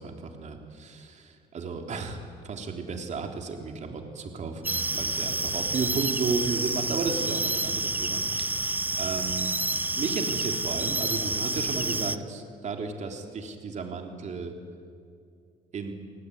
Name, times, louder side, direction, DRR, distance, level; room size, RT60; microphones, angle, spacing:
voice 1, 0.0-9.5 10.0-14.5 15.7-15.9, right 4 dB, 45° right, 3 dB, 3.5 m, -33 dB
sound 1, 4.6-12.2, right 2 dB, 10° right, 0.8 m, -29 dB
29.5 x 19.0 x 9.6 m, 2.3 s
cardioid pair, 110°, 17 cm